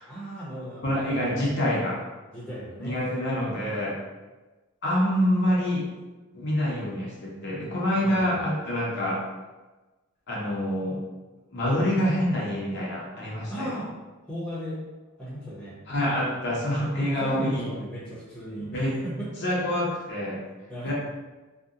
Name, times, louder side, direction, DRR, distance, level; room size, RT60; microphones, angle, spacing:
voice 1, 0.1-1.5 2.3-3.0 8.0-8.4 13.5-13.9 14.3-14.8 15.2-15.8 17.0-19.1 20.7-20.9, equal, 5° left, -9 dB, 0.7 m, -36 dB
voice 2, 0.8-2.0 2.8-4.0 4.8-5.8 6.3-9.2 10.3-11.0 11.5-13.8 15.9-17.7 18.7-18.9 19.4-20.4 20.8-20.9, equal, 50° left, -5 dB, 0.6 m, -26 dB
2.7 x 2.1 x 2.4 m, 1.2 s
head